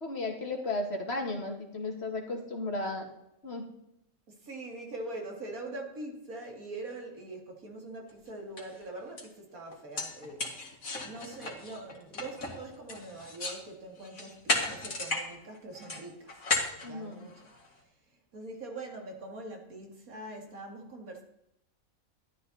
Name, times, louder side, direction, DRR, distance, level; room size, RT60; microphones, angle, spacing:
voice 1, 0.0-3.1 3.4-3.7 16.8-17.3, left 2 dB, 50° left, 2 dB, 2.3 m, -34 dB
voice 2, 4.4-16.4 16.8-17.4 18.3-21.2, right 2 dB, 90° right, 2 dB, 2.8 m, -43 dB
sound 1, 8.1-8.2 8.6-8.8 9.2-9.3 9.7-13.6 14.0-15.3 15.5-17.7, left 3 dB, 75° left, 2.8 m, -34 dB
13.0 x 12.0 x 4.2 m, 0.82 s
omnidirectional pair, 1.4 m